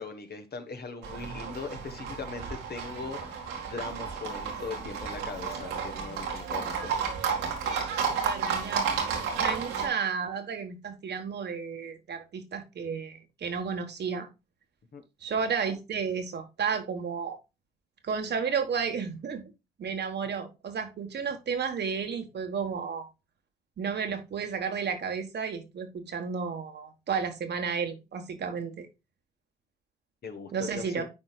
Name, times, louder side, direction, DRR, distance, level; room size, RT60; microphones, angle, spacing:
voice 1, 0.0-7.0 7.5-7.6 14.9-15.0 30.2-31.0, left 4 dB, 50° left, 1.4 m, -40 dB
Livestock farm animals working animals, 1.0-9.9, right 6 dB, 80° right, 2.0 m, -32 dB
voice 2, 8.2-8.9 9.3-14.3 15.2-17.4 18.0-19.4 19.8-23.1 23.8-28.9 30.5-31.0, right 6 dB, 55° right, 1.5 m, -32 dB
10.5 x 4.4 x 2.4 m
supercardioid pair, 55°, 21 cm